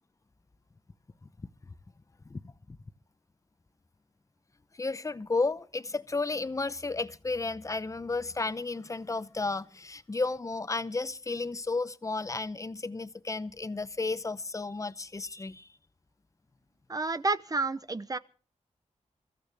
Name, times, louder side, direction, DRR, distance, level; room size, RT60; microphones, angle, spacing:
voice 1, 4.7-15.7, left 3 dB, 25° left, 0.8 m, -33 dB
voice 2, 16.9-18.2, right 3 dB, 30° right, 0.7 m, -30 dB
24.0 x 14.5 x 3.4 m
wide cardioid pair, 85°, 13 cm